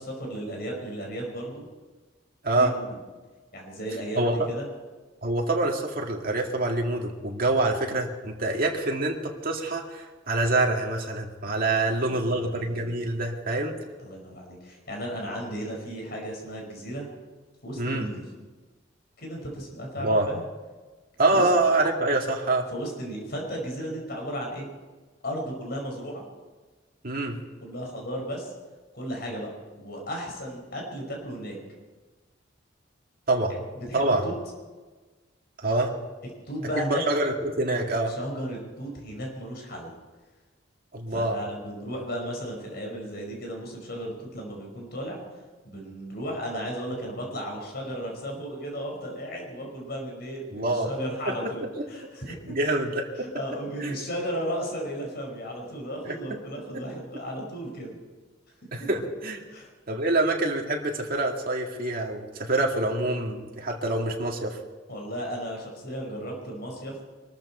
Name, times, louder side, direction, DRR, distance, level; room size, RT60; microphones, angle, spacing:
voice 1, 0.0-1.6 2.5-3.0 3.5-4.7 11.8-13.0 13.7-17.1 17.6-18.2 19.2-20.5 21.3-21.5 22.7-24.7 25.2-26.2 27.6-28.5 28.9-29.5 29.8-31.6 33.5-34.3 36.5-37.0 38.1-39.9 41.1-45.2 45.6-52.3 52.6-52.7 53.2-57.9 59.5-59.7 64.9-67.0, equal, 60° left, 0 dB, 5.3 m, -35 dB
voice 2, 2.4-2.7 4.2-4.5 5.2-13.7 17.8-18.1 20.0-20.3 21.2-22.7 27.0-27.4 33.3-33.5 33.9-34.2 35.6-35.9 36.9-38.1 40.9-41.4 50.5-50.9 52.5-53.1 53.8-54.0 56.0-56.2 58.7-59.4 59.9-64.6, right 2 dB, 50° right, 0 dB, 2.1 m, -26 dB
23.5 x 13.5 x 4.4 m, 1.3 s
head